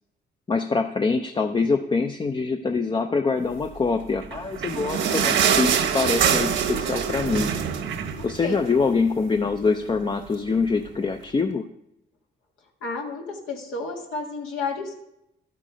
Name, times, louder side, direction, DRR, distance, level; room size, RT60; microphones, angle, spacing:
voice 1, 0.5-7.5 8.2-11.7, left 4 dB, 25° left, 6 dB, 0.5 m, -24 dB
sound 1, 4.2-8.9 9.3-9.4 9.7-9.8 10.5-10.6, right 7 dB, 70° right, 1.1 m, -24 dB
voice 2, 12.8-14.9, left 3 dB, 85° left, 0 dB, 1.8 m, -31 dB
12.0 x 5.8 x 5.0 m, 0.84 s
cardioid pair, 90°, 20 cm